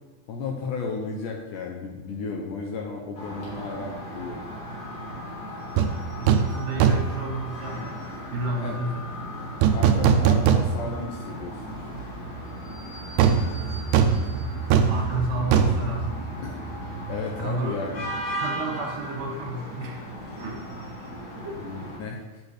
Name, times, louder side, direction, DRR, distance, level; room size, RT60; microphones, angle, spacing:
voice 1, 0.3-4.5 8.6-8.8 9.7-11.6 11.9-12.1 16.4-16.6 17.1-18.1 21.6-22.4, left 4 dB, 80° left, 1 dB, 1.9 m, -33 dB
sound 1, 3.1-22.0, equal, 55° left, 2.9 m, -37 dB
sound 2, 5.8-5.9 6.3-6.5 6.8-7.2 9.6-11.0 11.4-11.5 13.2-16.8 17.1-17.3, right 7 dB, 85° right, 1.8 m, -21 dB
voice 2, 6.2-8.0 8.3-9.1 14.9-16.1 17.4-17.9 18.4-20.0 20.4-20.5, right 2 dB, 70° right, -1 dB, 2.7 m, -31 dB
8.4 x 6.4 x 3.3 m, 1.1 s
omnidirectional pair, 4.2 m